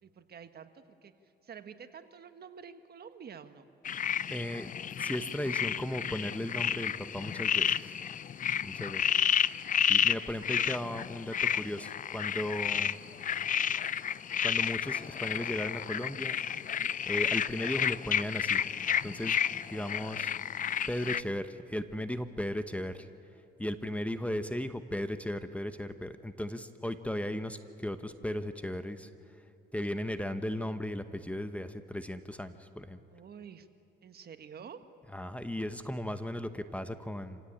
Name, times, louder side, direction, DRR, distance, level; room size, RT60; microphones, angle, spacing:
voice 1, 0.0-1.1 1.4-3.7 16.6-16.9 23.8-23.9 33.1-33.7 34.0-34.8, right 7 dB, 55° right, 9 dB, 1.4 m, -49 dB
sound 1, 3.8-21.2, left 9 dB, 40° left, 0.5 m, -31 dB
voice 2, 4.3-4.7 5.0-8.0 8.6-9.4 9.8-13.0 14.4-16.3 17.1-18.6 19.0-20.3 20.9-23.1 23.6-29.1 29.7-33.0 35.1-37.4, left 1 dB, 5° left, 10 dB, 1.1 m, -36 dB
27.0 x 16.5 x 8.7 m, 3.0 s
cardioid pair, 90°, 20 cm